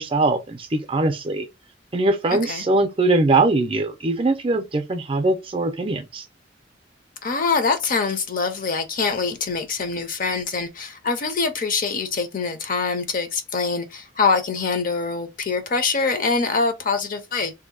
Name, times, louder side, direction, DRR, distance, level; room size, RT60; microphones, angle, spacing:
voice 1, 0.0-1.5 1.9-6.2, right 2 dB, 30° right, 0.5 m, -21 dB
voice 2, 7.2-17.5, left 4 dB, 45° left, 0.6 m, -24 dB
2.7 x 2.1 x 3.8 m
head